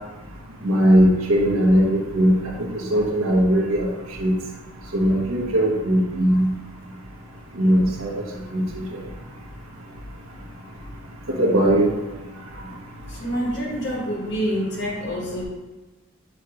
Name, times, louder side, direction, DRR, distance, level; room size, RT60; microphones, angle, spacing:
voice 1, 0.6-2.5 2.9-3.9 4.2-4.3 4.9-6.5 7.5-8.1 8.5-9.0 11.3-11.9, equal, 85° right, -2 dB, 1.2 m, -19 dB
voice 2, 13.1-15.4, equal, 55° left, -3 dB, 1.6 m, -27 dB
6.8 x 3.1 x 4.7 m, 1.1 s
head